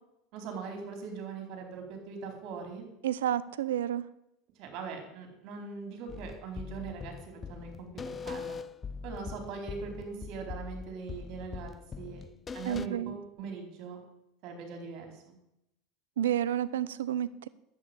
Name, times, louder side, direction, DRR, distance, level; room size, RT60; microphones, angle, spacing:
voice 1, 0.3-2.9 4.6-8.6 9.0-12.2 12.5-14.0 14.4-15.4, right 5 dB, 55° right, 4 dB, 4.2 m, -41 dB
voice 2, 3.0-4.1 12.7-13.1 16.2-17.5, right 11 dB, 80° right, 17 dB, 0.6 m, -30 dB
sound 1, 6.1-12.9, left 5 dB, 30° left, 0.5 m, -42 dB
11.0 x 8.8 x 8.2 m, 0.86 s
hypercardioid pair, 85°, 0 cm